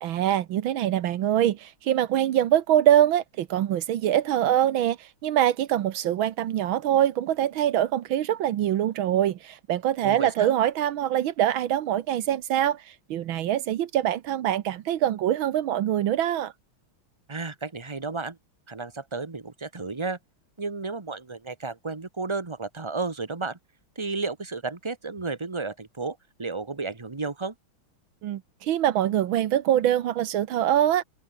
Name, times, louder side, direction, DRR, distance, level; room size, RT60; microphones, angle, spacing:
voice 1, 0.0-12.8 13.1-16.5 28.2-31.0, right 11 dB, 70° right, 1.7 m, -24 dB
voice 2, 10.0-10.5 17.3-18.4 18.7-20.2 20.6-23.6 23.9-27.5, right 3 dB, 15° right, 1.1 m, -32 dB
open air
omnidirectional pair, 2.3 m